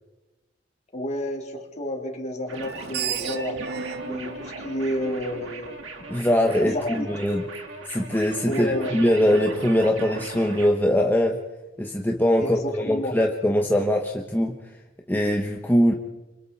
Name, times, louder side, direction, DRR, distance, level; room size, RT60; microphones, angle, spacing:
voice 1, 0.9-3.6 4.0-5.8 6.6-7.1 8.5-8.9 12.4-13.2, equal, 35° left, 1 dB, 3.6 m, -30 dB
sound 1, 2.5-10.7, right 3 dB, 80° right, 3.5 m, -38 dB
Screech, 2.6-5.8, right 7 dB, 55° right, 1.2 m, -34 dB
voice 2, 6.1-7.4 7.9-11.4 11.8-14.6 15.1-15.9, equal, 10° left, 1 dB, 1.2 m, -22 dB
30.0 x 25.5 x 4.2 m, 1.1 s
head